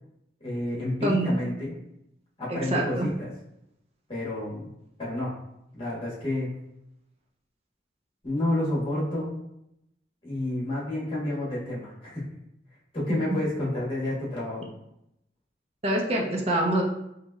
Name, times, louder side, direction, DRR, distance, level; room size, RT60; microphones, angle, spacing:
voice 1, 0.4-1.7 2.4-3.3 4.1-4.7 5.0-5.4 5.7-6.5 8.2-9.3 10.2-12.2 12.9-14.6, left 1 dB, 30° left, -7 dB, 1.4 m, -29 dB
voice 2, 1.0-1.3 2.5-3.1 15.8-16.8, right 1 dB, 35° right, -1 dB, 0.6 m, -25 dB
4.0 x 3.2 x 2.3 m, 0.82 s
head